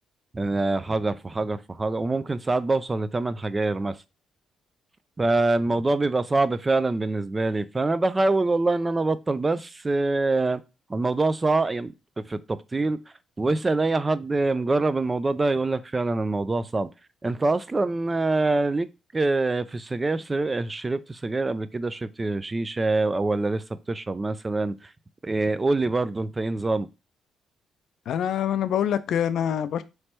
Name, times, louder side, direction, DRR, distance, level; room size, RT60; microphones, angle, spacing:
voice 1, 0.3-4.0 5.2-10.6 10.9-11.9 12.2-13.0 13.4-16.9 17.2-18.9 19.1-24.9 25.2-26.9, right 2 dB, 25° right, 0.4 m, -25 dB
voice 2, 28.1-29.8, left 9 dB, 70° left, 0.4 m, -25 dB
3.2 x 3.1 x 4.4 m
cardioid pair, 90°, 0 cm